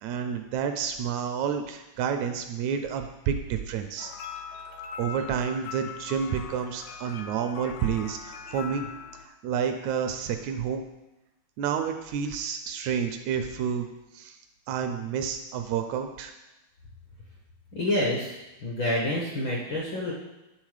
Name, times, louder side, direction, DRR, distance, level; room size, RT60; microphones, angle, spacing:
voice 1, 0.0-4.1 5.0-8.9 9.3-10.8 11.6-13.9 14.1-14.4 14.7-16.3, right 7 dB, 80° right, 6 dB, 1.8 m, -29 dB
sound 1, 4.0-9.3, left 6 dB, 90° left, 1.4 m, -41 dB
voice 2, 17.7-18.3 18.6-20.1, left 1 dB, 60° left, -3 dB, 1.3 m, -27 dB
9.7 x 3.8 x 4.9 m, 1.0 s
omnidirectional pair, 3.4 m